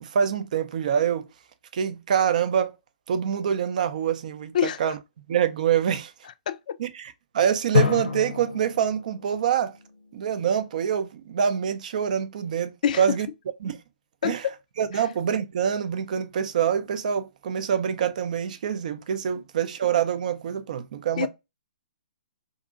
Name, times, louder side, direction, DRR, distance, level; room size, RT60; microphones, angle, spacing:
voice 1, 0.0-1.3 1.7-2.7 3.1-5.0 5.3-6.1 6.8-9.8 10.1-13.3 13.6-13.8 14.2-14.5 14.8-21.3, right 8 dB, 55° right, 0.4 m, -25 dB
voice 2, 4.5-4.8 6.5-6.7 12.8-13.0 14.2-14.4 14.9-15.0 21.2-21.3, left 9 dB, 55° left, 0.4 m, -25 dB
Drum, 7.7-10.4, left 6 dB, 85° left, 0.7 m, -28 dB
2.7 x 2.5 x 2.4 m
figure-of-eight pair, 125°, 5 cm